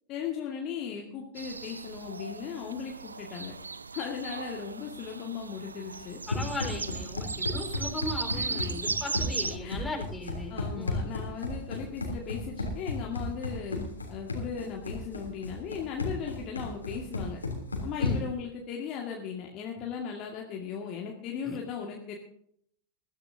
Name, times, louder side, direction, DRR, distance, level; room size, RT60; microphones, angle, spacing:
voice 1, 0.1-3.5 3.9-6.2 8.3-8.8 9.6-9.9 10.5-17.4 17.8-22.1, left 7 dB, 35° left, 0 dB, 2.0 m, -37 dB
sound 1, 1.4-9.6, right 4 dB, 75° right, 0.5 m, -37 dB
Run, 6.0-18.4, left 2 dB, 80° left, 3.1 m, -34 dB
voice 2, 6.3-11.0 18.0-18.2 21.4-21.6, left 2 dB, 10° left, 1 dB, 4.4 m, -38 dB
21.0 x 13.0 x 2.8 m, 0.68 s
figure-of-eight pair, 90°, 0 cm